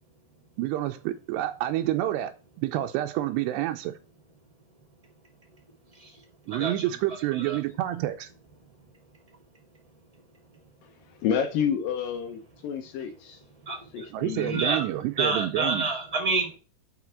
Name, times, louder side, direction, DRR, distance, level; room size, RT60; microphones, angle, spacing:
voice 1, 0.6-2.3 2.6-3.9 6.5-8.3 14.1-15.9, right 14 dB, 85° right, 2.7 m, -28 dB
voice 2, 6.5-6.9 7.4-7.6 13.6-14.9 15.2-16.6, right 3 dB, 20° right, 1.0 m, -29 dB
voice 3, 11.2-13.4 13.9-14.6, left 8 dB, 75° left, 2.1 m, -29 dB
6.0 x 5.7 x 5.7 m
omnidirectional pair, 4.9 m